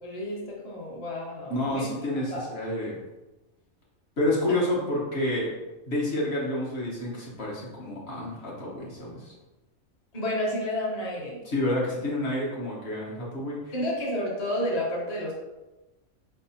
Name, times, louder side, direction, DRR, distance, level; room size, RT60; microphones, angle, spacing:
voice 1, 0.0-1.9 2.3-2.5 10.1-11.4 13.7-15.3, left 1 dB, 35° left, -4 dB, 0.8 m, -30 dB
voice 2, 1.5-3.0 4.2-5.5 5.9-9.3 11.4-13.7, left 1 dB, 50° left, -4 dB, 1.3 m, -29 dB
4.6 x 3.5 x 2.8 m, 1.1 s
omnidirectional pair, 1.4 m